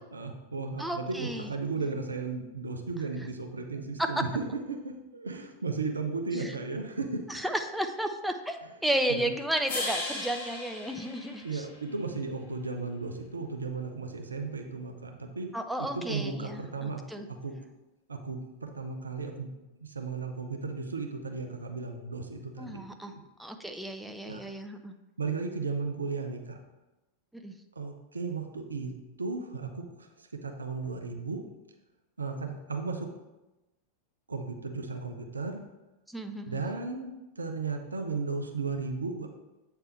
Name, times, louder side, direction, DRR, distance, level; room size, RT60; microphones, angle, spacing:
voice 1, 0.1-7.2 9.1-9.3 11.4-15.5 15.8-17.0 17.4-17.5 18.1-19.5 19.8-22.8 24.3-24.4 25.2-26.6 27.8-28.9 29.2-31.4 32.2-33.1 34.3-35.6 36.4-39.3, right 4 dB, 75° right, 3 dB, 0.7 m, -35 dB
voice 2, 0.8-1.5 4.0-4.1 6.3-6.5 7.3-11.7 15.5-17.3 22.6-23.1 23.4-24.9 27.4-27.5 36.1-36.6, right 1 dB, ahead, 5 dB, 0.5 m, -33 dB
sound 1, 9.7-12.0, left 2 dB, 50° left, 1.7 m, -37 dB
8.1 x 3.4 x 4.5 m, 1.0 s
figure-of-eight pair, 90°, 0 cm